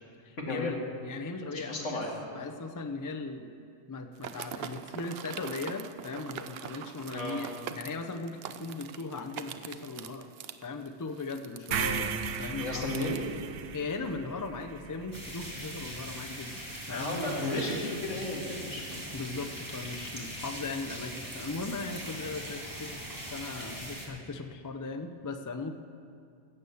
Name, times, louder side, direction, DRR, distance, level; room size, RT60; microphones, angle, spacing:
voice 1, 0.2-2.0 2.3-3.5 3.9-7.5 7.8-10.3 10.6-13.0 13.7-16.6 16.9-17.2 18.7-18.8 19.1-22.9 23.3-25.7, left 3 dB, 30° left, 7 dB, 0.3 m, -38 dB
voice 2, 1.5-2.1 7.1-7.4 12.6-13.2 16.9-19.1 19.4-19.5, left 1 dB, 70° left, -1 dB, 2.3 m, -33 dB
sound 1, 4.2-13.2, right 8 dB, 60° right, 0.7 m, -43 dB
sound 2, 11.7-15.8, right 6 dB, 80° right, 1.0 m, -36 dB
sound 3, 15.1-24.1, right 1 dB, 15° right, 2.0 m, -41 dB
15.5 x 7.9 x 7.0 m, 2.4 s
omnidirectional pair, 1.3 m